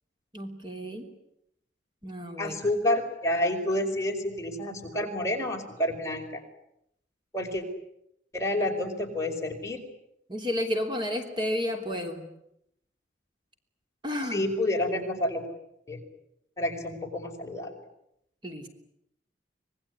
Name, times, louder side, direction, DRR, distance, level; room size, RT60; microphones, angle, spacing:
voice 1, 0.3-1.1 2.0-2.6 10.3-12.3 14.0-14.4 18.4-18.7, left 1 dB, 25° right, 4 dB, 3.3 m, -31 dB
voice 2, 2.4-6.4 7.3-7.6 8.3-9.8 14.3-15.4 15.9-16.0 16.6-17.8, left 1 dB, 15° left, 1 dB, 5.1 m, -29 dB
26.5 x 20.5 x 9.7 m, 0.79 s
head